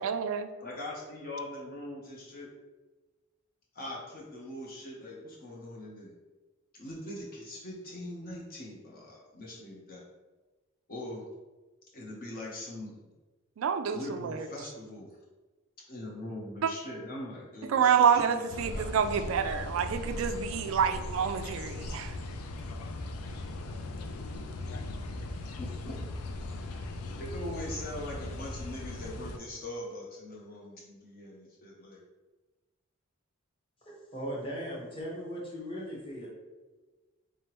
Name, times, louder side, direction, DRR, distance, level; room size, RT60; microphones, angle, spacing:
voice 1, 0.0-0.5 13.6-14.5 16.6-16.7 17.7-22.1, right 7 dB, 65° right, 8 dB, 0.3 m, -27 dB
voice 2, 0.6-2.5 3.7-6.2 6.7-10.0 10.9-11.3 11.9-12.9 13.9-15.2 15.9-18.9 25.4-25.9 26.5-26.8 27.2-32.0, left 1 dB, 40° left, -3 dB, 0.6 m, -42 dB
sound 1, 18.5-29.4, left 2 dB, 85° left, 0.4 m, -38 dB
voice 3, 33.8-36.3, equal, 25° left, -4 dB, 0.9 m, -38 dB
3.7 x 3.3 x 2.9 m, 1.2 s
head